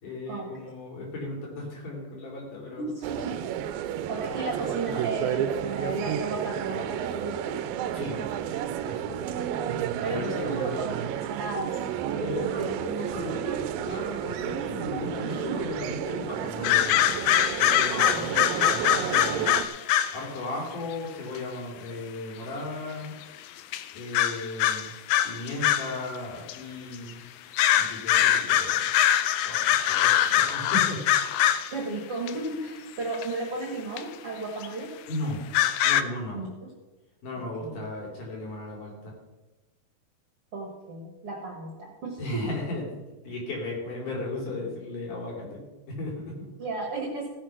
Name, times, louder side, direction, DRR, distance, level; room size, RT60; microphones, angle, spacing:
voice 1, 0.0-2.9 4.3-4.5 7.9-8.6 8.8-9.4 10.1-10.8 12.2-17.1 17.6-19.5 20.1-23.1 23.9-24.9 25.2-27.2 27.7-28.9 29.4-31.1 35.1-35.4 35.8-36.4 37.2-39.1 42.2-42.9 43.2-46.4, left 2 dB, 55° left, -1 dB, 4.2 m, -36 dB
voice 2, 2.8-3.4 4.1-7.5 9.4-12.7 15.2-15.7 17.9-18.7 19.4-19.5 31.7-34.9 36.3-36.5 37.6-37.8 40.5-42.4 46.6-47.3, right 3 dB, 50° right, 0 dB, 1.9 m, -34 dB
sound 1, 3.0-19.7, right 10 dB, 80° right, 2.2 m, -32 dB
sound 2, 16.6-20.2 21.4-21.5 23.1-23.2 23.7-23.8 24.1-26.0 26.5-26.6 27.5-31.7 32.3-32.4 33.1-33.3 34.0-34.1 34.6-34.7 35.5-36.0, left 11 dB, 80° left, 2.0 m, -23 dB
16.0 x 6.6 x 5.8 m, 1.1 s
omnidirectional pair, 4.5 m